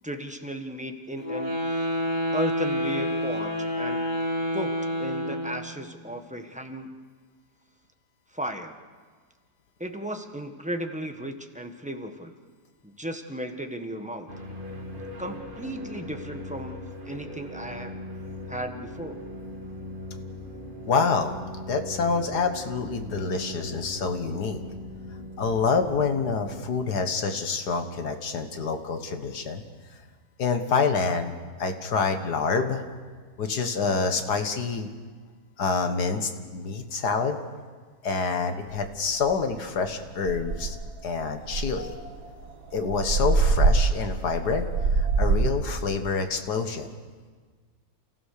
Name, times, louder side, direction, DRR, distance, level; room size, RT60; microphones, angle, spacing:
voice 1, 0.0-1.5 2.3-4.0 4.5-6.9 8.3-8.8 9.8-12.3 12.8-14.3 15.2-16.8 17.0-17.9 18.5-19.2, right 1 dB, 5° right, 4 dB, 1.2 m, -35 dB
sound 1, 1.2-5.7, equal, 20° left, 6.2 m, -28 dB
sound 2, 14.3-26.8, left 1 dB, 30° right, 2.4 m, -40 dB
voice 2, 20.9-21.4 21.7-24.6 25.4-29.6 30.4-31.3 31.6-32.8 33.4-34.9 35.6-37.4 38.0-40.8 41.0-41.9 42.7-44.7 44.9-46.9, left 4 dB, 85° left, 7 dB, 2.1 m, -27 dB
sound 3, 38.8-38.9 39.3-39.5 39.9-40.0 40.2-40.9 41.5-45.7, right 3 dB, 80° right, 2.1 m, -24 dB
29.0 x 15.5 x 6.7 m, 1.5 s
omnidirectional pair, 1.7 m